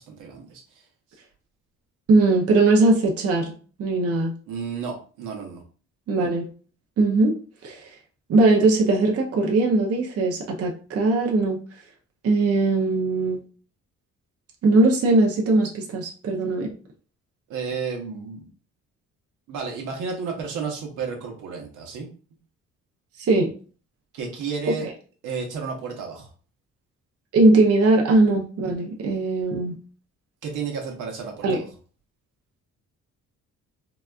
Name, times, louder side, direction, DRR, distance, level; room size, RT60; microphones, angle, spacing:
voice 1, 0.1-0.8 4.5-5.6 17.5-18.4 19.5-22.1 24.1-24.9 25.2-26.3 30.4-31.6, right 5 dB, 85° right, 1 dB, 1.0 m, -32 dB
voice 2, 2.1-3.5 3.8-4.3 6.1-6.5 7.0-7.4 7.6-7.9 8.3-11.6 12.2-13.4 14.6-16.7 23.2-23.5 24.7-24.8 27.3-29.8 31.4-31.6, right 2 dB, 50° right, 0 dB, 0.7 m, -20 dB
4.0 x 2.3 x 2.4 m, 0.39 s
cardioid pair, 90°, 30 cm